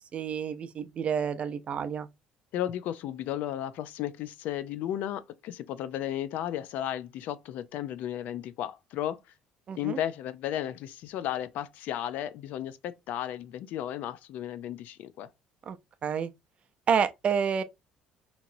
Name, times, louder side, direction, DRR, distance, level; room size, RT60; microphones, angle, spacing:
voice 1, 0.1-2.1 9.7-10.0 15.7-15.8 16.0-16.3 16.9-17.6, right 7 dB, 45° right, 0.4 m, -29 dB
voice 2, 2.5-9.2 9.8-15.3, left 11 dB, 70° left, 0.4 m, -34 dB
2.9 x 2.8 x 2.5 m
cardioid pair, 100°, 3 cm